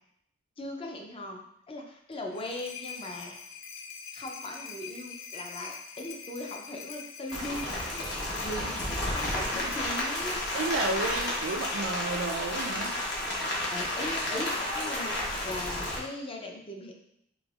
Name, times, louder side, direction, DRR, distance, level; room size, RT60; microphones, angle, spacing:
voice 1, 0.6-3.4 4.1-10.4 13.7-16.9, left 1 dB, 25° left, 1 dB, 0.5 m, -39 dB
sound 1, 2.1-11.8, left 6 dB, 80° left, 0.5 m, -44 dB
Rain, 7.3-16.0, left 1 dB, 60° left, 1.1 m, -32 dB
voice 2, 10.5-13.0, right 2 dB, 75° right, 0 dB, 0.4 m, -31 dB
5.0 x 3.5 x 2.4 m, 0.74 s
head